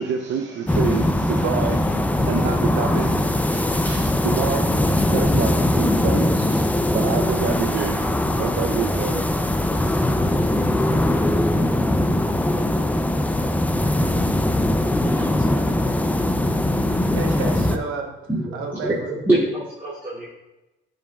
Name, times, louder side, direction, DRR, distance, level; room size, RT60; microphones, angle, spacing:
voice 1, 0.0-9.3, right 7 dB, 70° right, 0.6 m, -28 dB
sound 1, 0.7-17.8, left 1 dB, 10° left, 0.5 m, -21 dB
voice 2, 15.1-18.1 18.5-19.1, right 4 dB, 85° right, 1.1 m, -34 dB
voice 3, 18.5-19.0 19.2-20.3, right 1 dB, 10° right, 2.5 m, -23 dB
10.5 x 5.2 x 2.4 m
cardioid pair, 90°, 20 cm